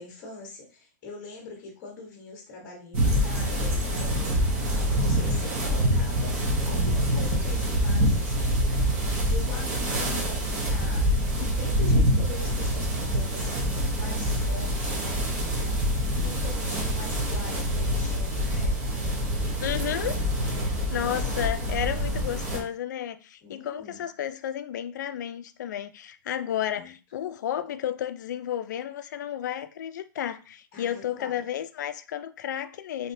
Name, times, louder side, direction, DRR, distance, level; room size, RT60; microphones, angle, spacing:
voice 1, 0.0-18.8 23.4-24.0 26.7-26.9 30.7-31.4, left 3 dB, 25° left, 1.0 m, -43 dB
sound 1, 2.9-22.6, equal, 35° right, 0.8 m, -26 dB
voice 2, 19.6-33.1, left 10 dB, 65° left, 0.4 m, -32 dB
3.3 x 2.8 x 2.6 m
supercardioid pair, 170°, 10 cm